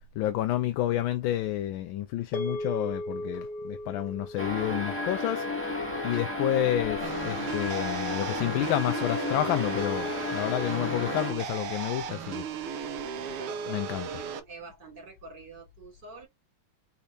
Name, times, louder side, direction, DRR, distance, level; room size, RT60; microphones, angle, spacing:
voice 1, 0.2-5.8 6.0-12.4 13.7-14.1, left 13 dB, 75° left, 1.3 m, -30 dB
sound 1, 2.3-6.8, left 1 dB, 50° left, 1.5 m, -38 dB
sound 2, 4.4-11.3, left 2 dB, 5° left, 1.3 m, -32 dB
sound 3, 7.0-14.4, right 6 dB, 85° right, 1.7 m, -36 dB
voice 2, 13.2-16.3, right 3 dB, 50° right, 3.4 m, -46 dB
4.7 x 4.2 x 2.7 m
omnidirectional pair, 2.3 m